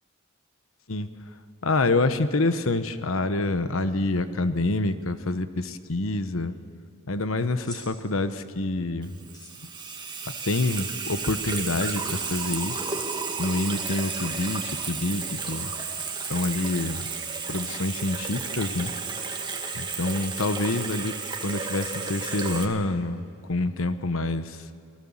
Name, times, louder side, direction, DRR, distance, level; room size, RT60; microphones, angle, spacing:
voice 1, 1.6-6.6 7.1-9.2 10.3-12.9 13.4-15.7 16.3-17.1 17.5-18.9 19.7-23.2 23.5-24.7, left 2 dB, 75° left, 11 dB, 1.1 m, -27 dB
sound 1, 7.5-7.8 9.2-9.5 10.8-11.0 12.2-12.5 13.6-13.9 15.1-15.7, left 1 dB, 20° left, 4.6 m, -46 dB
Water tap faucet / Sink (filling or washing), 9.0-22.7, right 5 dB, 20° right, 1.9 m, -32 dB
28.0 x 19.0 x 7.3 m, 2.4 s
head